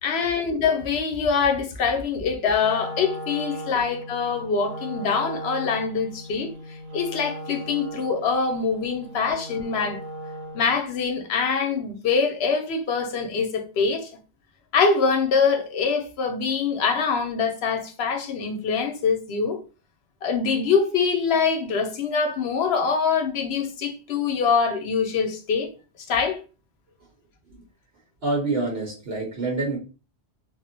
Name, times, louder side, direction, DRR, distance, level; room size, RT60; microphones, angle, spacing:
voice 1, 0.0-10.0 10.5-14.1 14.7-19.6 20.2-25.7 26.1-26.4, left 5 dB, 70° left, 0.9 m, -24 dB
Wind instrument woodwind instrument, 2.6-10.8, right 1 dB, 45° right, 0.7 m, -38 dB
voice 2, 28.2-29.8, right 3 dB, 70° right, 1.1 m, -27 dB
3.5 x 2.1 x 2.6 m
omnidirectional pair, 1.1 m